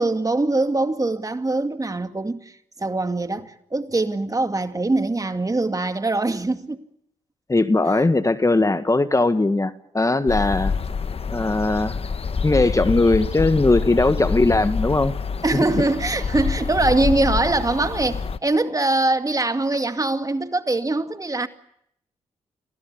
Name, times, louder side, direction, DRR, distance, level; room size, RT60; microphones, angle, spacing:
voice 1, 0.0-2.5 2.8-6.9 15.4-21.5, right 2 dB, 25° right, 2.2 m, -23 dB
voice 2, 7.5-10.7 11.3-12.0 12.4-15.1, left 2 dB, 25° left, 1.7 m, -19 dB
sound 1, 10.3-18.4, left 5 dB, 50° left, 1.2 m, -27 dB
27.0 x 17.0 x 9.6 m
supercardioid pair, 45°, 13 cm